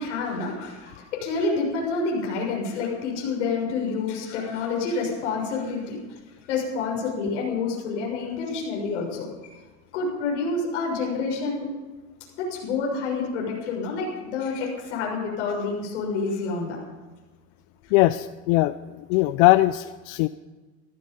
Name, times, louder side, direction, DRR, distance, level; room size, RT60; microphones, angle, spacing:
voice 1, 0.0-6.0 6.5-9.3 9.9-11.7 12.4-16.8 17.8-17.9, left 4 dB, 85° left, -1 dB, 6.8 m, -28 dB
voice 2, 17.9-20.3, left 18 dB, 65° left, 13 dB, 0.7 m, -20 dB
17.0 x 15.0 x 5.4 m, 1.3 s
supercardioid pair, 115°, 35 cm